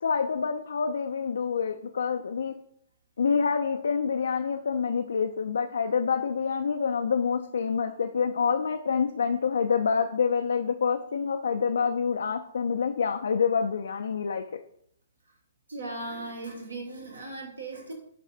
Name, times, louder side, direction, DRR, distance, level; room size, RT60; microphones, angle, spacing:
voice 1, 0.0-2.5 3.2-14.4, left 6 dB, 60° left, 5 dB, 0.3 m, -27 dB
voice 2, 15.7-17.9, right 2 dB, 70° right, 2 dB, 1.4 m, -37 dB
10.0 x 4.0 x 2.5 m, 0.69 s
figure-of-eight pair, 120°, 0 cm